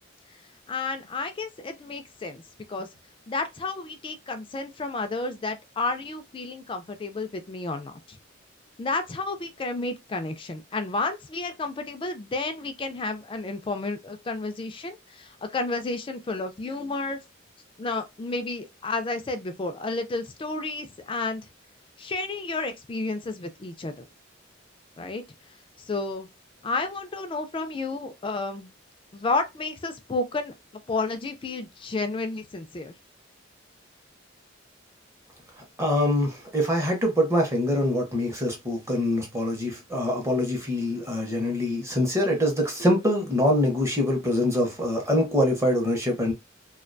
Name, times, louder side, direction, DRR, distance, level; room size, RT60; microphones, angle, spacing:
voice 1, 0.7-2.4 2.7-2.9 3.3-8.2 8.8-17.2 17.8-21.5 22.0-24.1 25.0-25.2 25.8-26.3 26.6-28.7 29.1-30.5 30.9-32.9, left 3 dB, 25° left, 0.3 m, -31 dB
voice 2, 35.8-46.3, left 1 dB, 15° right, 0.7 m, -24 dB
2.3 x 2.2 x 2.5 m
head